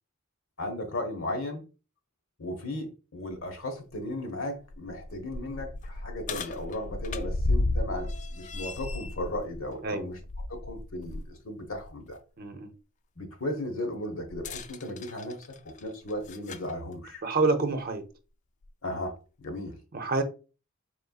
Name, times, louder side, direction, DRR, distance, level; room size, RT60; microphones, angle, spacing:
voice 1, 0.6-1.6 2.4-10.2 10.5-12.2 13.2-15.4 15.8-17.2 18.8-19.8, left 1 dB, 75° left, 1.2 m, -36 dB
sound 1, 3.3-3.4 3.9-4.0 4.6-11.3 11.7-11.9 14.3-16.7 17.7-17.8 18.6-18.7, left 2 dB, 35° left, 0.3 m, -34 dB
voice 2, 12.4-12.7 17.2-18.0 19.9-20.2, right 3 dB, 45° right, 0.7 m, -27 dB
4.4 x 4.0 x 2.4 m
head